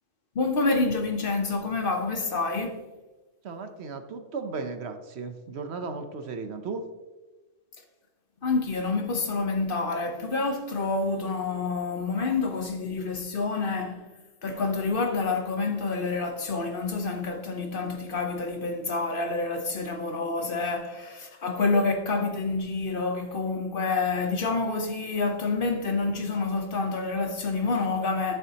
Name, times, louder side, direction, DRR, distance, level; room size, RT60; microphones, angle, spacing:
voice 1, 0.3-2.9 8.4-14.1 14.4-28.4, left 3 dB, 50° left, 0.9 m, -28 dB
voice 2, 3.4-6.9, right 4 dB, 60° right, 0.9 m, -35 dB
12.0 x 6.9 x 2.8 m
omnidirectional pair, 1.3 m